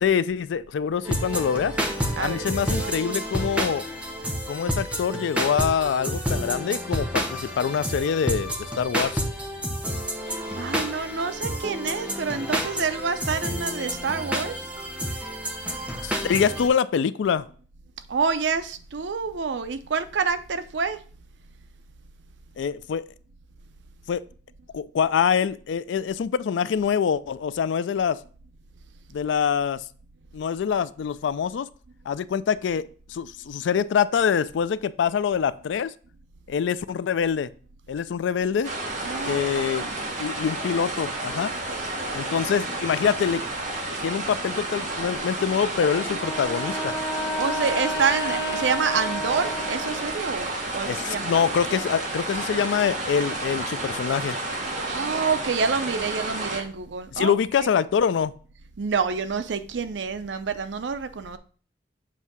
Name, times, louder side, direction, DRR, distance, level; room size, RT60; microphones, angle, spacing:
voice 1, 0.0-1.8 2.2-3.9 4.5-9.2 16.0-17.5 22.6-23.1 24.1-24.2 24.7-28.2 29.1-29.8 30.3-31.7 32.1-35.9 36.5-37.5 37.9-38.7 39.3-39.9 40.2-41.5 42.1-43.4 44.0-47.0 50.9-54.4 57.1-58.3, left 7 dB, 90° left, 0.3 m, -25 dB
sound 1, 1.0-16.7, equal, 5° right, 0.8 m, -29 dB
voice 2, 10.6-14.6 18.1-21.0 39.0-40.0 47.4-51.3 54.8-57.3 58.8-61.4, right 5 dB, 80° right, 0.6 m, -27 dB
sound 2, 38.6-56.6, right 2 dB, 45° right, 1.5 m, -31 dB
Wind instrument woodwind instrument, 46.1-50.3, equal, 20° left, 1.1 m, -31 dB
7.5 x 2.7 x 5.9 m
head